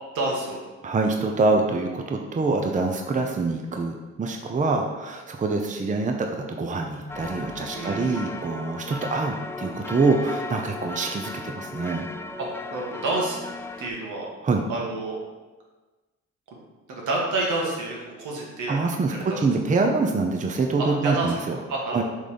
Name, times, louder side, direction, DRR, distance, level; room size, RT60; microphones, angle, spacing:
voice 1, 0.1-0.6 7.7-8.2 12.4-13.4 13.8-14.3 14.7-15.2 16.9-18.8 19.3-19.4 20.8-21.3 21.7-22.0, right 2 dB, 80° right, -2 dB, 1.8 m, -28 dB
voice 2, 0.8-12.1 14.4-14.6 18.7-21.6 21.9-22.0, right 3 dB, 25° right, 3 dB, 0.7 m, -25 dB
sound 1, 7.1-13.9, left 3 dB, 10° left, 0.3 m, -36 dB
6.4 x 3.8 x 5.2 m, 1.2 s
cardioid pair, 90°, 30 cm